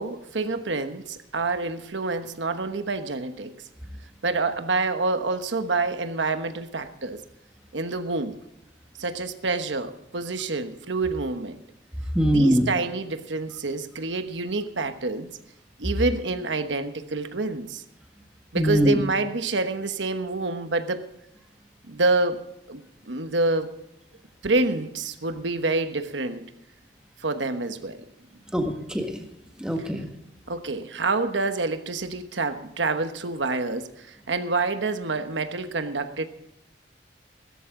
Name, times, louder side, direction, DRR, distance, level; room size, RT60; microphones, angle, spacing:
voice 1, 0.0-3.5 4.2-7.2 7.7-8.4 9.0-11.6 12.2-15.3 15.8-17.8 18.5-21.1 21.9-22.4 22.7-23.7 24.4-26.5 27.2-28.0 30.5-36.2, right 3 dB, 90° right, 1.2 m, -27 dB
voice 2, 12.1-12.7 18.5-19.0 28.5-29.1 29.6-30.1, equal, 5° right, 1.7 m, -22 dB
16.0 x 14.0 x 3.8 m
head